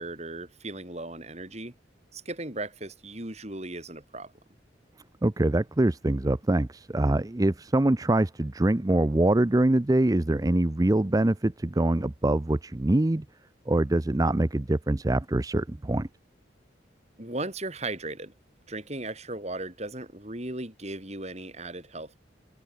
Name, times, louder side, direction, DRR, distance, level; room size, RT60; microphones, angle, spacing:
voice 1, 0.0-1.7 2.1-4.3 17.2-18.3 18.7-22.2, right 2 dB, 35° right, 4.9 m, -37 dB
voice 2, 5.2-13.2 13.7-16.1, right 1 dB, 20° right, 0.5 m, -24 dB
head